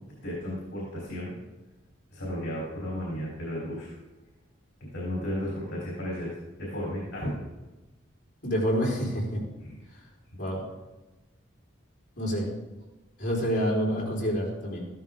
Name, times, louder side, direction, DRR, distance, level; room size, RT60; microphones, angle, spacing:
voice 1, 0.2-1.3 2.1-3.9 4.9-7.3 9.6-9.8, equal, 80° left, -5 dB, 3.5 m, -34 dB
voice 2, 8.4-9.4 10.4-10.6 12.2-12.5 13.2-14.9, equal, 60° left, -4 dB, 4.0 m, -27 dB
14.0 x 13.0 x 3.7 m, 1.1 s
head